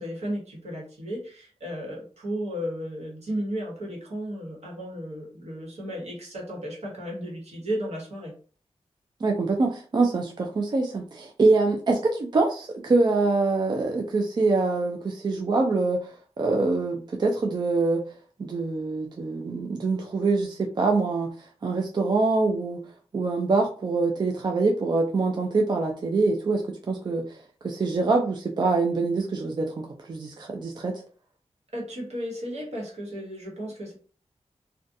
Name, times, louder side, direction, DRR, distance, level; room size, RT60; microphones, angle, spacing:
voice 1, 0.0-8.3 31.7-33.9, equal, 75° right, -2 dB, 1.2 m, -34 dB
voice 2, 9.2-18.0 18.4-22.8 23.1-31.0, right 3 dB, 40° right, 2 dB, 0.4 m, -25 dB
2.4 x 2.2 x 2.6 m, 0.40 s
wide cardioid pair, 80°, 11 cm